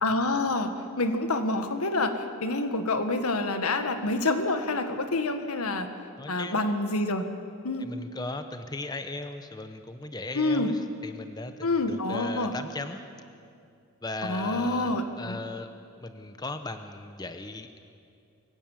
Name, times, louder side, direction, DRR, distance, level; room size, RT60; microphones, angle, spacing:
voice 1, 0.0-0.7 1.0-5.9 6.3-7.3 7.6-7.9 10.3-10.7 11.6-12.5 14.2-15.4, left 2 dB, 90° left, 7 dB, 1.7 m, -27 dB
voice 2, 6.2-6.6 7.8-13.0 14.0-15.7 16.0-17.8, left 2 dB, 20° left, 8 dB, 0.7 m, -37 dB
23.0 x 16.5 x 7.3 m, 2.4 s
head